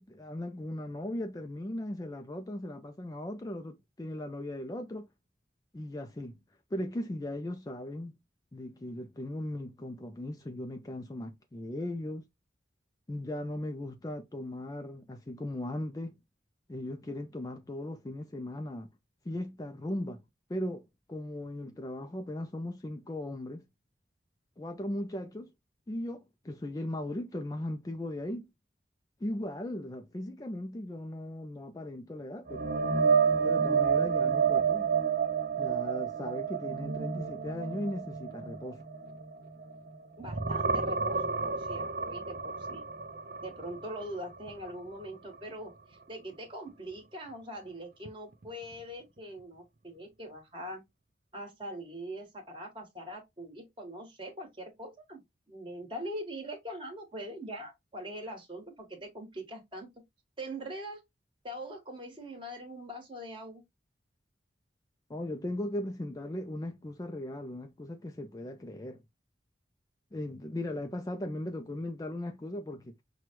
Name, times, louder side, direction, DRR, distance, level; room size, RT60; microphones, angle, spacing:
voice 1, 0.0-5.1 5.7-6.4 6.7-8.2 8.5-12.3 13.1-16.2 16.7-18.9 19.2-20.2 20.5-23.7 24.6-25.5 25.9-28.5 29.2-32.7 33.4-34.9 35.6-38.8 65.1-69.0 70.1-73.0, left 1 dB, 20° left, 0.3 m, -38 dB
sound 1, 32.5-39.9 40.2-44.1 44.5-44.7 48.1-48.2, right 6 dB, 50° right, 0.5 m, -29 dB
voice 2, 40.2-42.8 43.4-50.8 51.3-55.2 55.5-59.9 60.4-61.0 61.4-63.6, right 1 dB, 25° right, 1.4 m, -42 dB
5.9 x 2.2 x 3.0 m
head